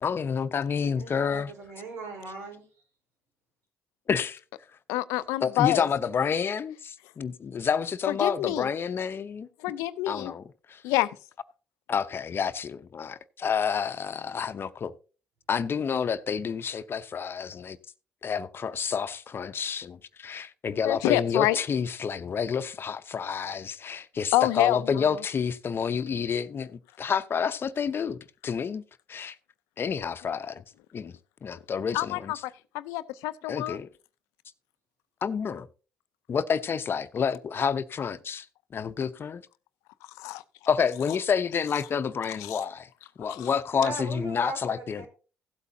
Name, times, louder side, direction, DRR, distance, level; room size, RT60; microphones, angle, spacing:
voice 1, 0.0-1.5 4.1-4.4 5.4-9.5 10.1-10.4 10.7-10.8 11.9-14.9 15.5-17.8 18.2-26.7 27.0-28.8 29.1-29.3 29.8-30.6 30.9-31.1 31.4-32.3 33.5-33.9 35.2-35.7 36.3-38.5 38.7-39.4 40.7-42.9 43.2-45.1, left 6 dB, 50° left, 0.7 m, -29 dB
voice 2, 0.9-2.6 43.8-45.1, right 2 dB, 80° right, 3.9 m, -38 dB
voice 3, 4.9-5.9 8.1-8.7 9.6-10.3 10.8-11.1 20.8-21.6 24.3-25.2 31.9-33.8 40.2-40.4 42.4-42.7 43.2-43.5, left 15 dB, 90° left, 0.5 m, -27 dB
16.0 x 8.3 x 2.7 m
supercardioid pair, 60°, 5 cm